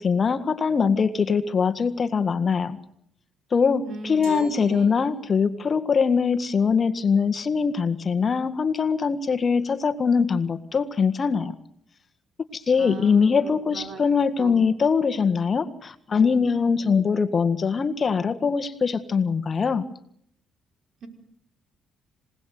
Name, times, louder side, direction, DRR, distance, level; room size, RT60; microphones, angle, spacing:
voice 1, 0.0-2.8 3.5-11.5 12.5-19.9, left 5 dB, 40° left, 11 dB, 1.7 m, -22 dB
voice 2, 3.8-4.9 12.8-14.0 14.4-14.6 21.0-21.1, right 3 dB, 60° right, 6 dB, 5.2 m, -38 dB
Glass, 4.2-5.7, right 7 dB, 85° right, 5.3 m, -51 dB
27.0 x 18.0 x 9.5 m, 0.71 s
cardioid pair, 80°, 0 cm